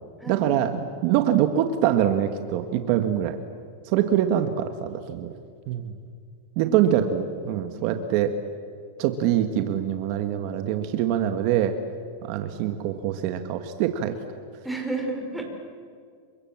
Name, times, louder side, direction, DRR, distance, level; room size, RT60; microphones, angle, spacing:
voice 1, 0.3-3.4 3.8-5.3 5.7-5.9 6.6-8.3 9.0-11.7 12.2-14.1, right 10 dB, 50° right, 7 dB, 1.6 m, -24 dB
voice 2, 2.7-3.1 6.6-7.1 7.7-7.9 14.6-15.4, right 2 dB, ahead, 1 dB, 5.0 m, -33 dB
30.0 x 24.5 x 7.4 m, 2.2 s
supercardioid pair, 140°, 0 cm